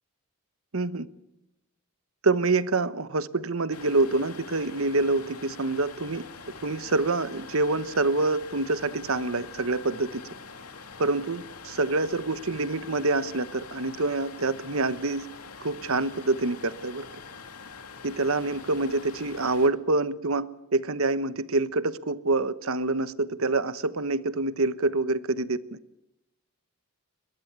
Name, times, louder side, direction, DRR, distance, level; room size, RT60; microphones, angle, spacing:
voice 1, 0.7-1.1 2.2-6.2 6.6-10.2 11.0-15.3 15.6-17.0 18.0-25.8, right 3 dB, 65° right, 14 dB, 1.1 m, -26 dB
sound 1, 3.7-19.7, left 5 dB, 90° left, 2.6 m, -44 dB
22.5 x 21.0 x 8.2 m, 0.91 s
head